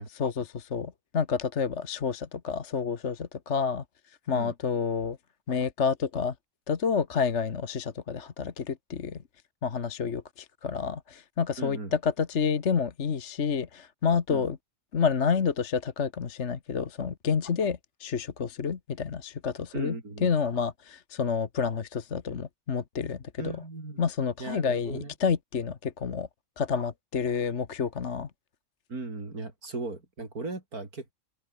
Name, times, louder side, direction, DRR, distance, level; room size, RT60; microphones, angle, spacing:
voice 1, 0.0-3.8 4.3-5.2 5.5-6.3 6.7-9.2 9.6-14.6 14.9-20.0 20.2-23.5 24.0-26.3 26.6-28.3, left 6 dB, 50° left, 1.6 m, -29 dB
voice 2, 11.6-11.9 14.3-14.5 19.7-20.3 23.4-24.0 24.4-25.1 28.9-31.1, right 3 dB, 85° right, 5.1 m, -37 dB
omnidirectional pair, 1.5 m